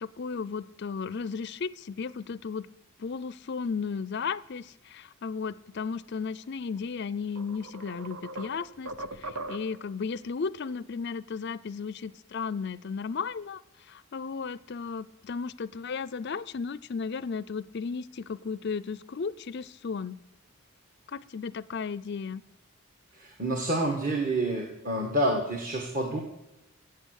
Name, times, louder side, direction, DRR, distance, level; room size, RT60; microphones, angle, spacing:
voice 1, 0.0-2.7 3.0-20.2 21.1-22.4, left 5 dB, 50° left, 17 dB, 0.4 m, -35 dB
sound 1, 6.8-6.9 7.4-9.9, right 2 dB, 85° right, 1.0 m, -40 dB
voice 2, 23.1-26.2, right 1 dB, 35° right, 1 dB, 1.4 m, -28 dB
16.0 x 8.0 x 6.5 m, 0.92 s
head